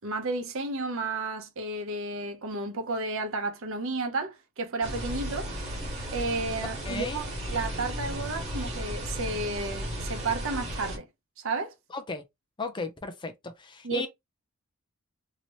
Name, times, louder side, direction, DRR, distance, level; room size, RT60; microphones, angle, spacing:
voice 1, 0.0-5.5 6.1-11.1 11.4-11.7 13.8-14.1, right 3 dB, 65° right, 0.8 m, -32 dB
sound 1, 4.8-11.0, equal, 30° right, 1.6 m, -35 dB
voice 2, 6.8-7.2 11.9-12.2 12.6-14.1, left 3 dB, 20° left, 0.5 m, -35 dB
2.9 x 2.8 x 3.0 m
head